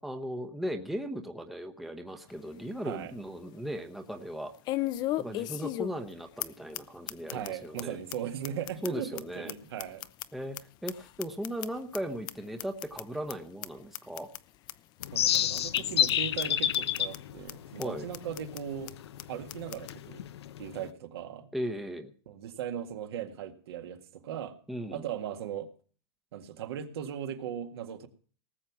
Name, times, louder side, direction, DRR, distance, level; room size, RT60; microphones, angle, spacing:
voice 1, 0.0-4.5 5.2-8.0 8.8-9.5 10.3-14.3 17.8-18.1 21.5-22.1 24.7-25.1, equal, ahead, 5 dB, 0.9 m, -37 dB
sound 1, 2.3-2.4 2.9-3.0 4.6-6.1 6.4-6.5 6.7-6.8 7.1-7.5 7.8-7.9 8.1-8.2 8.4-10.6 10.9-12.0 12.3-12.4 12.6-13.0 13.3-13.4 13.6-13.7 13.9-14.4 14.7-14.8 15.0-15.1 15.3-15.8 16.1-16.2 16.4-16.5 16.7-17.2 17.5-17.6 17.8-17.9 18.1-18.6 18.9-19.0 19.2-19.3 19.5-19.9, left 15 dB, 30° left, 0.6 m, -35 dB
voice 2, 7.3-10.0 15.1-18.9 19.3-20.2 20.6-21.5 22.3-24.6 24.9-25.7 26.3-28.1, right 9 dB, 70° right, 5 dB, 2.0 m, -38 dB
sound 2, 15.0-20.9, left 11 dB, 80° left, 0.8 m, -30 dB
18.5 x 7.4 x 6.0 m, 0.43 s
hypercardioid pair, 140°, 14 cm